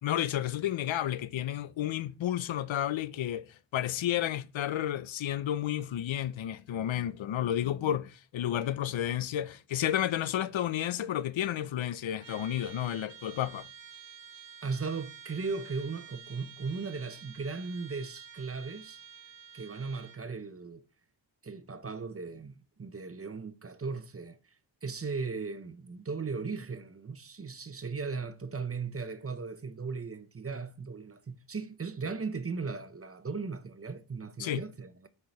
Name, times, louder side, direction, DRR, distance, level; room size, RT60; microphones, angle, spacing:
voice 1, 0.0-13.7 34.4-34.6, left 11 dB, 90° left, 0.6 m, -31 dB
Trumpet, 12.2-20.3, right 7 dB, 70° right, 1.2 m, -50 dB
voice 2, 14.6-19.0 19.5-20.8 21.4-24.4 24.8-35.1, right 4 dB, 30° right, 0.7 m, -37 dB
6.5 x 4.8 x 5.7 m
wide cardioid pair, 135°, 45 cm